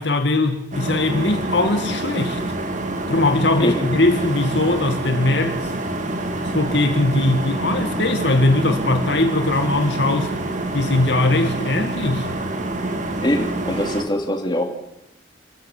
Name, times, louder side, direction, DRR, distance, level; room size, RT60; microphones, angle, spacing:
voice 1, 0.0-2.4 3.1-5.7 6.3-10.4 10.7-12.3, left 2 dB, 75° left, 2.1 m, -20 dB
sound 1, 0.7-14.0, right 2 dB, 45° right, 2.3 m, -26 dB
voice 2, 13.2-14.7, left 1 dB, 25° left, 2.8 m, -23 dB
28.5 x 14.5 x 7.4 m
head